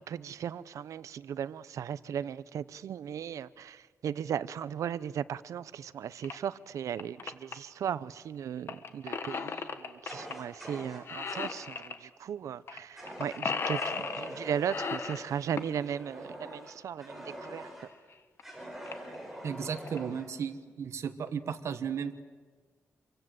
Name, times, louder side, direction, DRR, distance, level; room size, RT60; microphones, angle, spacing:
voice 1, 0.0-17.7, right 8 dB, 90° right, 16 dB, 0.7 m, -37 dB
sound 1, 6.2-6.3 6.8-7.5 8.7-10.3 10.6-10.8 11.1-12.0 12.7-12.8 13.1-14.3 14.7-15.8 17.4-17.5 18.1-18.2 18.4-18.5 18.9-19.1 19.6-20.0, left 5 dB, 50° left, 1.5 m, -35 dB
Fire, 10.0-11.7 13.0-13.4 13.7-17.9 18.4-20.3, equal, 5° right, 5.5 m, -44 dB
voice 2, 19.4-22.2, right 7 dB, 65° right, 8 dB, 1.4 m, -35 dB
27.0 x 24.0 x 7.9 m, 1.5 s
wide cardioid pair, 155°, 5 cm